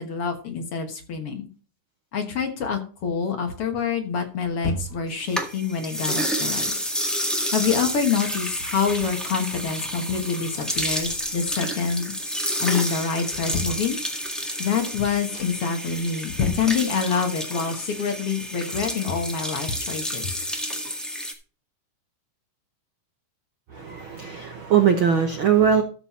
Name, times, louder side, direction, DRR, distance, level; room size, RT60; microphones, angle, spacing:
voice 1, 0.0-1.5 2.1-6.7 7.5-12.1 12.6-14.0 14.6-20.3, left 6 dB, 55° left, 5 dB, 2.0 m, -26 dB
sound 1, 3.9-5.6 6.3-7.8 8.1-8.2 8.5-10.1 10.5-11.7 12.0-12.5 13.0-14.4 14.9-15.0 15.3-15.8 16.2-17.4 17.7-19.5 19.9-20.0, left 3 dB, 80° left, 2.9 m, -37 dB
sound 2, 5.1-21.3, equal, ahead, 0.8 m, -30 dB
voice 2, 23.7-25.8, right 8 dB, 65° right, 5 dB, 1.3 m, -20 dB
13.0 x 6.7 x 4.2 m, 0.38 s
omnidirectional pair, 3.6 m